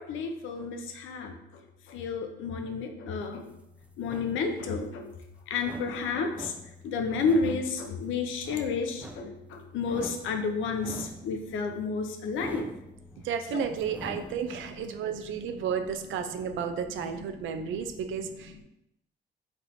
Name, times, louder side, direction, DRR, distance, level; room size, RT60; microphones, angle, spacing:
voice 1, 0.0-3.5 4.0-5.2 5.5-12.7 13.5-13.8 14.1-18.6, left 4 dB, 80° left, 5 dB, 0.6 m, -32 dB
sound 1, 3.2-14.9, right 1 dB, 5° right, 0.3 m, -46 dB
voice 2, 13.2-18.6, right 7 dB, 75° right, 7 dB, 0.4 m, -32 dB
4.1 x 3.2 x 2.7 m, 0.87 s
cardioid pair, 90°, 20 cm